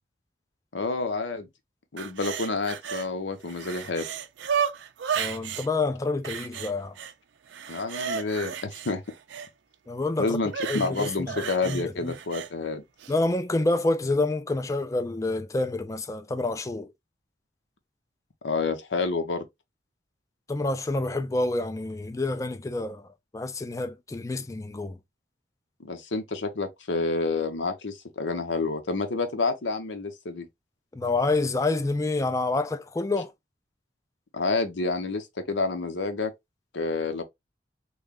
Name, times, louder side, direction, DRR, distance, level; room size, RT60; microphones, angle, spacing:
voice 1, 0.7-1.5 1.9-4.0 7.7-9.0 10.2-12.8 18.4-19.5 25.8-30.5 34.3-36.3 36.7-37.2, left 3 dB, 85° left, 0.8 m, -29 dB
sound 1, 2.0-3.1 3.4-5.7 6.2-7.1 7.5-9.5 10.5-12.5 13.0-13.1, right 7 dB, 80° right, 0.4 m, -33 dB
voice 2, 5.2-7.0 9.9-10.4 10.7-12.2 13.1-16.9 20.5-23.1 23.3-25.0 30.9-33.3, left 2 dB, 15° left, 0.3 m, -28 dB
3.1 x 2.2 x 3.6 m
head